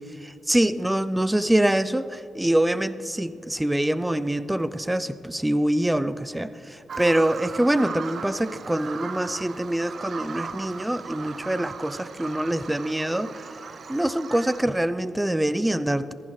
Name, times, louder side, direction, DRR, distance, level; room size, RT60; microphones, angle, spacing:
voice 1, 0.2-13.3 13.9-16.1, right 1 dB, 10° right, 14 dB, 0.4 m, -25 dB
Bird vocalization bird call bird song, 6.9-14.6, right 5 dB, 55° right, 0.5 m, -38 dB
15.0 x 15.0 x 3.2 m, 2.5 s
cardioid pair, 85°, 0 cm